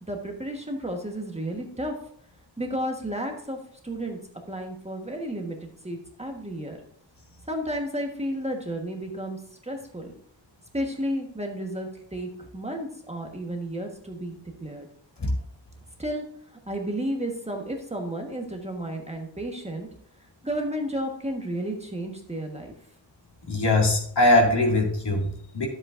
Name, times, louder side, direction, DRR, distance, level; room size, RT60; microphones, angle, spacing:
voice 1, 0.1-1.9 2.6-3.6 3.8-4.2 4.5-6.8 7.5-10.1 10.7-14.9 16.0-16.2 16.7-19.9 20.4-22.7, right 1 dB, 15° right, 2 dB, 1.2 m, -32 dB
voice 2, 23.5-25.7, left 1 dB, 60° left, 0 dB, 2.2 m, -21 dB
10.5 x 7.8 x 2.5 m, 0.63 s
wide cardioid pair, 105°, 45 cm